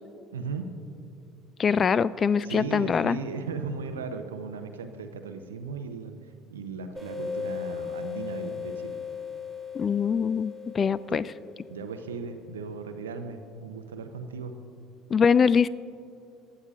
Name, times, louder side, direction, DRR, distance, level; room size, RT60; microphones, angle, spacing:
voice 1, 0.3-0.7 2.4-6.2 6.5-9.0 11.1-11.2 11.7-14.5, right 4 dB, 90° right, 7 dB, 0.7 m, -36 dB
voice 2, 1.6-3.2 9.7-11.2 15.1-15.7, left 6 dB, 40° left, 19 dB, 0.3 m, -23 dB
sound 1, 7.0-12.3, left 6 dB, ahead, 2.9 m, -37 dB
20.0 x 12.5 x 2.5 m, 2.5 s
hypercardioid pair, 65°, 0 cm